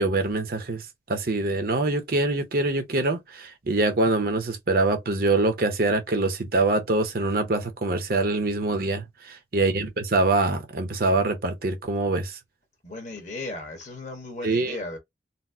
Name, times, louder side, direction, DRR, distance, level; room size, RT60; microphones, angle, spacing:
voice 1, 0.0-12.4 14.4-14.8, right 2 dB, 50° right, 0.7 m, -24 dB
voice 2, 12.8-15.0, left 2 dB, 40° left, 1.2 m, -36 dB
4.1 x 2.0 x 2.6 m
head